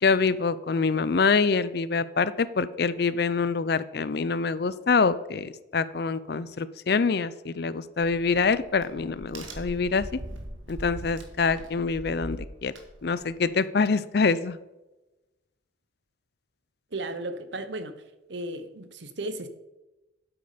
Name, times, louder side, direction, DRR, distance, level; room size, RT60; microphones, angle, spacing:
voice 1, 0.0-10.2 10.7-12.7 13.0-14.6, left 4 dB, 55° left, 16 dB, 0.5 m, -25 dB
Crack, 8.0-13.4, right 1 dB, 85° right, 1.8 m, -41 dB
voice 2, 16.9-17.9 18.3-19.5, right 2 dB, 65° right, 11 dB, 1.0 m, -34 dB
8.8 x 8.1 x 5.1 m, 1.0 s
head